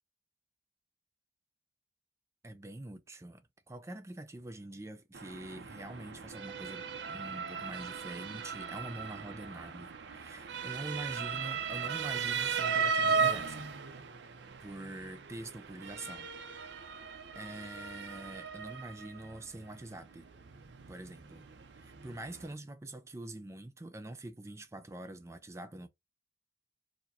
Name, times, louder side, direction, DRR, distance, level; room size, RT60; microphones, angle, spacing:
voice 1, 2.4-13.7 14.6-16.3 17.4-20.3 20.9-21.4 21.8-25.9, right 1 dB, 15° right, 0.4 m, -45 dB
Motor vehicle (road) / Siren, 5.1-22.5, right 5 dB, 65° right, 0.5 m, -37 dB
4.6 x 2.2 x 4.2 m
head